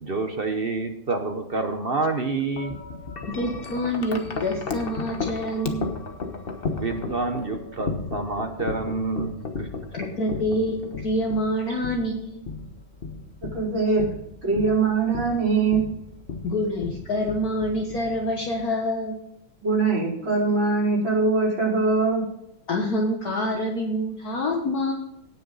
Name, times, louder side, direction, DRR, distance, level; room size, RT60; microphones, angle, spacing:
voice 1, 0.0-2.7 6.8-9.7, right 3 dB, 45° right, 5 dB, 0.7 m, -28 dB
Wind chime, 2.6-18.7, left 4 dB, 35° left, 1.0 m, -34 dB
voice 2, 3.3-5.9 9.9-12.4 16.4-19.2 22.7-24.9, left 1 dB, 50° left, 0 dB, 1.7 m, -26 dB
voice 3, 13.4-14.1 14.4-15.9 19.6-22.3, right 4 dB, 80° right, -5 dB, 5.5 m, -22 dB
17.5 x 6.4 x 4.0 m, 0.80 s
omnidirectional pair, 2.1 m